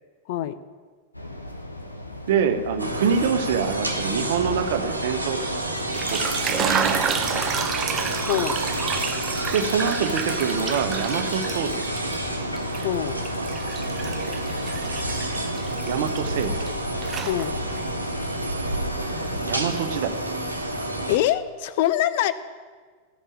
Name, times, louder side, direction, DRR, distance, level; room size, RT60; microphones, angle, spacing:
sound 1, 1.1-20.0, left 1 dB, 85° left, 0.8 m, -36 dB
voice 1, 2.3-5.7 6.1-7.0 9.5-11.9 15.9-16.7 19.3-20.2, right 7 dB, 55° right, 8 dB, 0.8 m, -25 dB
sound 2, 2.8-21.2, right 1 dB, 85° right, 1.0 m, -29 dB
sound 3, 5.8-12.2 12.6-16.7 17.0-17.8, right 7 dB, 25° right, 0.6 m, -30 dB
voice 2, 8.3-8.6 12.8-13.2 17.3-17.6 21.1-22.3, left 12 dB, 50° left, 13 dB, 0.5 m, -24 dB
13.0 x 5.5 x 8.4 m, 1.5 s
figure-of-eight pair, 90°, 0 cm